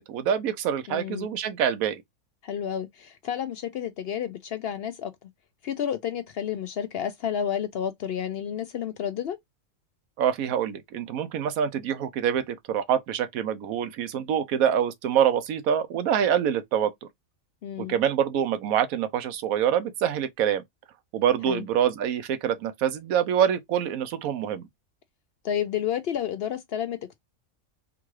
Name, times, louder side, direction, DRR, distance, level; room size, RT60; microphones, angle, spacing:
voice 1, 0.0-2.0 10.2-17.1 17.8-20.6 21.1-24.7, right 9 dB, 90° right, 1.1 m, -25 dB
voice 2, 0.9-1.3 2.4-5.1 5.6-9.4 17.6-18.0 21.5-21.6 25.4-27.2, left 9 dB, 65° left, 0.6 m, -30 dB
3.7 x 2.3 x 3.0 m
omnidirectional pair, 1.4 m